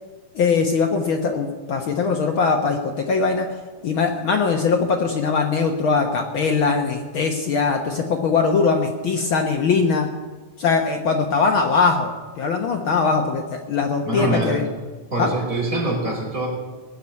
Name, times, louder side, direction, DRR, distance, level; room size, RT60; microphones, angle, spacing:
voice 1, 0.3-10.1 10.6-14.6 15.2-15.3, left 4 dB, 90° left, 3 dB, 1.1 m, -21 dB
voice 2, 14.0-14.5 15.1-16.5, right 1 dB, 20° right, -2 dB, 4.8 m, -24 dB
20.0 x 7.1 x 9.4 m, 1.4 s
omnidirectional pair, 3.9 m